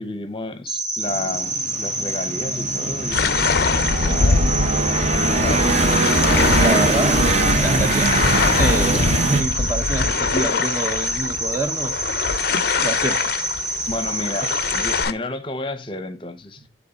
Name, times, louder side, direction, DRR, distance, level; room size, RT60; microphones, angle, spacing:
voice 1, 0.0-3.4 3.9-4.5 5.2-5.8 13.9-16.7, left 2 dB, 30° left, 0.7 m, -31 dB
Cricket, 0.7-15.0, right 2 dB, 75° right, 2.3 m, -27 dB
sound 1, 1.0-9.4, right 2 dB, 35° right, 0.9 m, -22 dB
sound 2, 3.1-15.1, left 5 dB, 55° left, 0.4 m, -23 dB
voice 2, 6.6-8.1 8.5-12.0 12.8-13.3 14.4-14.8, right 2 dB, 15° right, 0.5 m, -27 dB
9.2 x 3.6 x 4.0 m
head